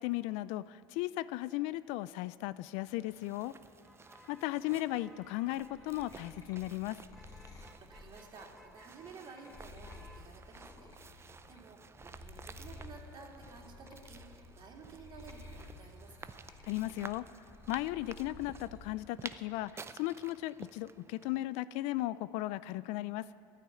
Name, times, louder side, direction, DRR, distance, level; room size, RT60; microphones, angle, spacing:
voice 1, 0.0-3.5 4.3-7.0 16.6-17.2 17.7-23.3, left 17 dB, 65° left, 17 dB, 0.4 m, -36 dB
Motor vehicle (road), 2.7-13.2, equal, ahead, 1.0 m, -63 dB
sound 1, 2.8-21.4, right 5 dB, 20° right, 0.6 m, -53 dB
sound 2, 5.4-11.6 11.9-18.9 19.3-20.0, left 2 dB, 30° left, 2.6 m, -53 dB
voice 2, 7.8-16.4, right 4 dB, 40° right, 1 dB, 2.6 m, -53 dB
12.0 x 10.0 x 9.0 m, 2.4 s
hypercardioid pair, 85°, 12 cm